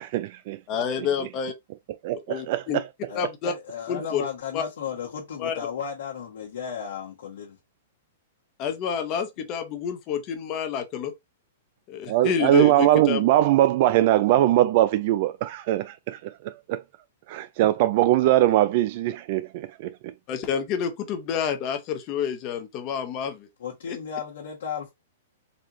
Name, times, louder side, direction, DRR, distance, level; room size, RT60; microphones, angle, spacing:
voice 1, 0.0-0.6 2.0-2.8 12.1-16.8 17.3-19.9, right 14 dB, 50° right, 0.3 m, -21 dB
voice 2, 0.7-1.5 2.3-2.8 3.1-3.5 3.9-4.2 4.5-4.6 5.4-5.5 8.6-11.1 11.9-13.3 20.3-23.5 23.9-24.0, left 7 dB, 40° left, 0.9 m, -28 dB
voice 3, 3.1-7.6 23.6-24.9, left 7 dB, 75° left, 1.3 m, -34 dB
4.1 x 2.4 x 3.0 m
hypercardioid pair, 130°, 0 cm